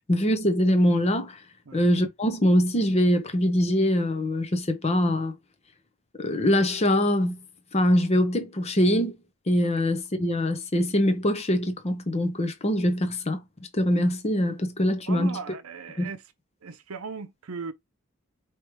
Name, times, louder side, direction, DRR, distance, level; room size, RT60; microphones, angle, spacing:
voice 1, 0.1-1.4 1.7-5.3 6.2-7.4 7.7-9.2 9.5-13.4 13.7-15.4 16.0-16.1, equal, 30° left, 0.8 m, -23 dB
voice 2, 15.1-16.2 16.6-17.7, right 5 dB, 75° right, 0.6 m, -37 dB
4.8 x 3.0 x 3.1 m
head